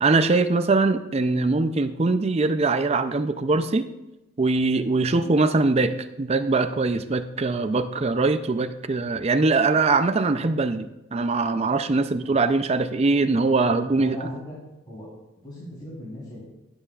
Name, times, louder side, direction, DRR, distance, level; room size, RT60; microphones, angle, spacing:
voice 1, 0.0-3.8 4.4-5.9 6.2-14.2, right 3 dB, 30° right, 10 dB, 0.4 m, -22 dB
voice 2, 13.9-14.6 14.9-15.1 15.4-16.4, equal, 20° left, -8 dB, 3.5 m, -38 dB
16.5 x 7.9 x 2.4 m, 0.97 s
head